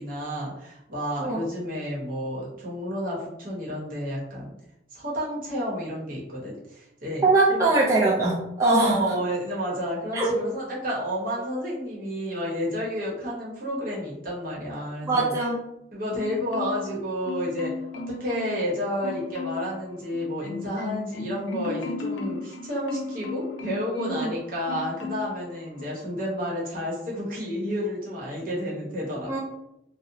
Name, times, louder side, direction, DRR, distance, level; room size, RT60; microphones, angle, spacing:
voice 1, 0.0-4.5 4.9-7.2 7.5-7.7 8.7-15.3 15.9-29.4, equal, 50° right, -4 dB, 0.8 m, -31 dB
voice 2, 7.2-9.1 10.1-10.3 15.0-15.6 24.1-24.3 29.3-29.4, right 2 dB, 15° right, -5 dB, 0.3 m, -22 dB
Marimba xylophone, 16.2-17.0 17.2-18.7 19.0-19.7 20.1-24.3 24.7-25.4 25.8-26.0, left 4 dB, 75° left, 0.3 m, -35 dB
2.8 x 2.0 x 2.5 m, 0.85 s
head